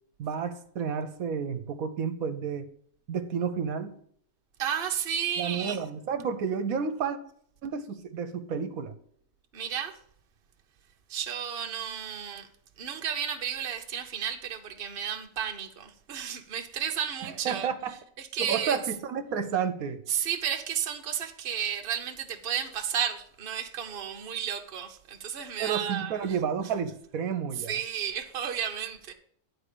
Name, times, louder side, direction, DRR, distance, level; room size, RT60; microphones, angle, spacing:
voice 1, 0.2-2.7 3.1-3.9 5.4-7.2 7.6-8.9 17.4-17.9 18.4-20.0 25.6-27.7, right 6 dB, 75° right, 1.2 m, -31 dB
voice 2, 4.6-5.8 9.5-10.0 11.1-12.5 12.8-17.7 18.2-18.8 20.1-26.3 27.5-29.1, right 8 dB, 45° right, 1.0 m, -32 dB
10.0 x 4.2 x 6.6 m
omnidirectional pair, 1.5 m